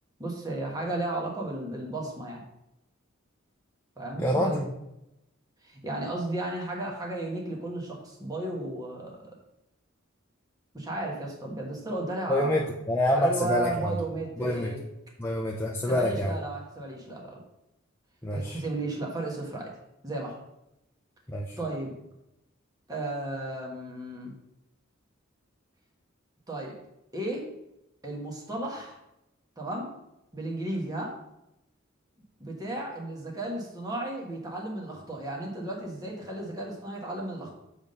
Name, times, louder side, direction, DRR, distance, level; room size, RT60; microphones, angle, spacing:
voice 1, 0.2-2.4 4.0-4.5 5.6-9.4 10.7-12.6 13.1-14.8 15.9-17.4 18.3-19.7 20.0-20.4 21.6-21.9 22.9-24.3 26.5-26.7 27.1-27.5 28.0-29.0 29.6-29.9 30.3-31.1 32.4-37.5, right 2 dB, 20° right, -1 dB, 1.3 m, -34 dB
voice 2, 4.2-4.7 12.3-13.9 14.4-14.7 15.2-16.3 18.2-18.6 21.3-21.6, left 1 dB, 10° left, -2 dB, 0.5 m, -27 dB
7.2 x 3.6 x 5.3 m, 0.86 s
head